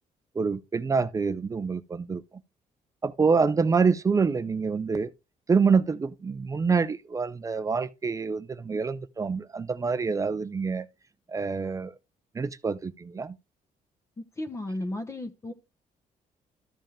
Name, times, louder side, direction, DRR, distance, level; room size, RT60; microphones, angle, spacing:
voice 1, 0.3-2.2 3.0-5.1 5.5-10.9 11.3-11.9 12.3-13.4, right 5 dB, 25° right, 0.5 m, -26 dB
voice 2, 14.2-15.5, left 1 dB, 20° left, 1.0 m, -34 dB
13.0 x 5.3 x 3.5 m
cardioid pair, 140°, 14 cm